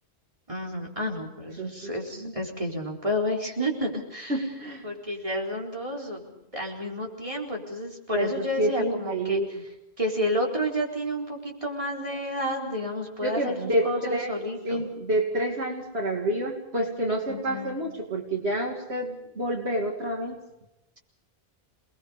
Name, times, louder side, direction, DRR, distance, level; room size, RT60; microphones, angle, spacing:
voice 1, 0.5-4.4 4.8-9.4 10.0-14.8 17.3-17.8, equal, 30° right, -1 dB, 4.2 m, -30 dB
voice 2, 1.6-1.9 2.2-2.3 4.3-4.9 8.1-9.6 13.2-14.3 14.6-20.4, right 1 dB, 80° right, 1 dB, 2.8 m, -28 dB
28.5 x 20.5 x 5.1 m, 0.91 s
omnidirectional pair, 1.1 m